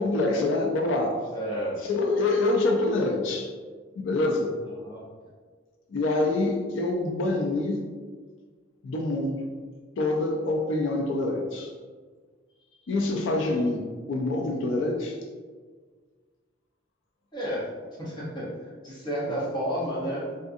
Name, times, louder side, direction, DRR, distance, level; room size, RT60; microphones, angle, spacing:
voice 1, 0.0-1.2 1.8-3.5 3.9-4.5 5.9-7.8 8.8-9.4 10.0-11.7 12.9-15.2, left 2 dB, 85° left, 1 dB, 0.4 m, -26 dB
voice 2, 1.3-1.9 4.8-5.1 17.3-17.7 18.0-20.3, equal, 25° left, -7 dB, 0.9 m, -31 dB
3.6 x 2.4 x 2.6 m, 1.5 s
head